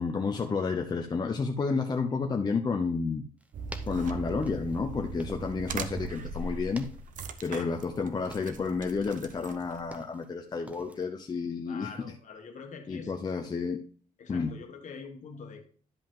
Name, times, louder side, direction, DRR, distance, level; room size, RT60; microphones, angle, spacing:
voice 1, 0.0-3.2 3.9-6.9 7.4-11.9 12.9-13.8 14.3-14.5, left 4 dB, 25° left, 4 dB, 0.7 m, -31 dB
sound 1, 3.4-5.7 6.0-6.4 6.7-8.0 8.2-8.7 9.1-10.3 10.7-11.0, right 1 dB, 10° right, 0.7 m, -48 dB
sound 2, 3.5-9.9, right 4 dB, 60° right, 0.8 m, -39 dB
voice 2, 11.7-13.3 14.2-15.7, left 5 dB, 55° left, 5 dB, 1.4 m, -44 dB
10.5 x 5.2 x 3.7 m, 0.43 s
cardioid pair, 140°, 15 cm